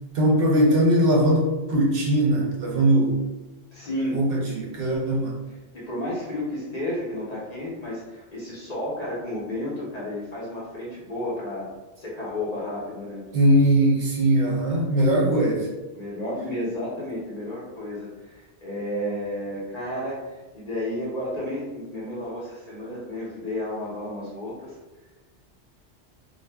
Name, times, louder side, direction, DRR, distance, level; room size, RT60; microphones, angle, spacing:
voice 1, 0.1-3.2 4.1-5.4 13.3-15.7, right 1 dB, 60° right, -3 dB, 0.7 m, -20 dB
voice 2, 3.7-4.2 5.7-11.7 12.0-13.2 15.9-24.7, left 1 dB, 45° left, -6 dB, 0.6 m, -32 dB
2.4 x 2.0 x 3.3 m, 1.1 s
omnidirectional pair, 1.2 m